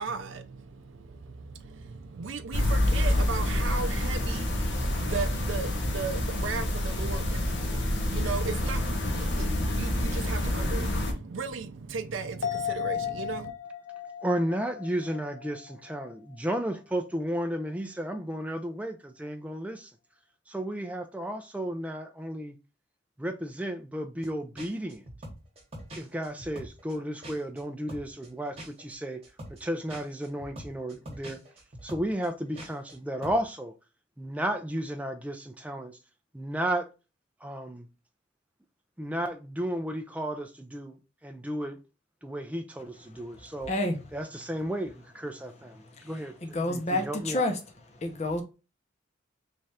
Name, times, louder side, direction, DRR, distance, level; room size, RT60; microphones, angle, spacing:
voice 1, 0.0-13.5, right 4 dB, 75° right, 0.5 m, -36 dB
sound 1, 2.5-11.1, left 1 dB, 65° left, 0.8 m, -28 dB
sound 2, 12.4-16.1 16.5-16.6, left 9 dB, 85° left, 0.5 m, -35 dB
voice 2, 14.2-19.9 20.5-22.5 23.2-25.0 26.0-29.2 29.6-31.4 31.8-33.7 34.2-36.0 36.3-36.9 37.4-37.9 39.0-41.0 41.2-41.8 42.2-43.7 44.1-47.5, right 1 dB, 5° right, 0.3 m, -33 dB
sound 3, 24.2-24.3 24.6-27.6 27.9-33.0 33.2-33.4, equal, 30° right, 1.1 m, -44 dB
voice 3, 43.7-44.0 46.0-46.1 46.4-47.6 48.0-48.4, left 1 dB, 35° left, 0.6 m, -28 dB
3.2 x 2.4 x 4.0 m
head